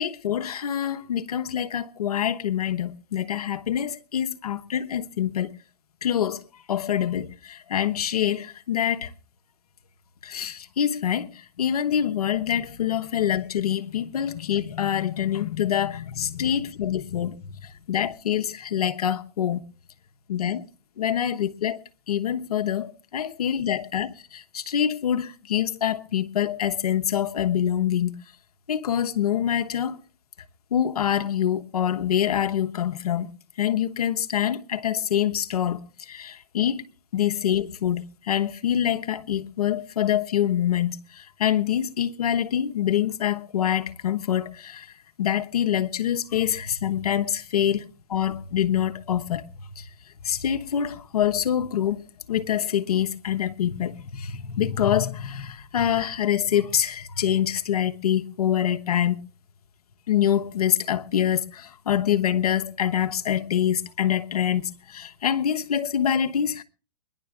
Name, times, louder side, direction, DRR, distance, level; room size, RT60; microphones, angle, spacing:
voice 1, 0.0-5.5 6.0-6.4 6.7-9.1 10.2-17.5 17.9-19.6 20.3-20.6 21.0-21.8 22.1-28.2 28.7-30.0 30.7-33.3 33.6-35.8 36.1-36.8 37.1-44.9 45.2-49.4 49.8-49.9 50.2-52.0 52.3-59.2 60.1-66.6, left 10 dB, 70° left, 1.1 m, -25 dB
22.5 x 11.0 x 3.6 m
hypercardioid pair, 120°, 20 cm